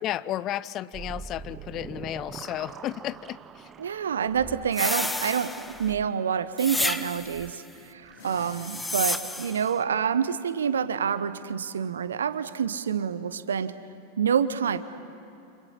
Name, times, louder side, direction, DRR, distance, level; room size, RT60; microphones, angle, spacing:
voice 1, 0.0-3.7, left 13 dB, 35° left, 18 dB, 0.6 m, -33 dB
sound 1, 0.9-8.4, right 6 dB, 20° right, 0.7 m, -45 dB
voice 2, 3.8-5.5 5.8-13.7 14.2-14.8, right 7 dB, 65° right, 13 dB, 1.0 m, -27 dB
sound 2, 4.7-5.9 6.6-7.5 8.4-9.7, left 2 dB, 5° left, 0.9 m, -31 dB
sound 3, 8.0-9.7, left 3 dB, 65° left, 3.5 m, -48 dB
29.5 x 27.0 x 5.8 m, 2.8 s
figure-of-eight pair, 90°, 0 cm